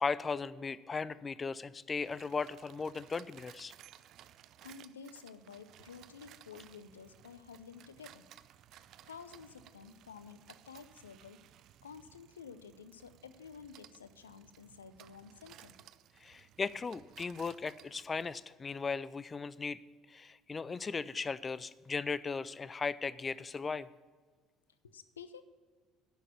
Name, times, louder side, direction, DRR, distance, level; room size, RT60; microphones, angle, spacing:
voice 1, 0.0-3.7 16.2-19.8 20.1-23.9, left 4 dB, 30° left, 18 dB, 0.5 m, -37 dB
sound 1, 2.0-18.4, right 12 dB, 60° right, 0.4 m, -59 dB
voice 2, 4.6-8.2 8.7-11.4 11.8-15.7 24.8-25.4, left 6 dB, 85° left, 13 dB, 0.5 m, -51 dB
10.5 x 6.4 x 8.5 m, 1.5 s
hypercardioid pair, 60°, 0 cm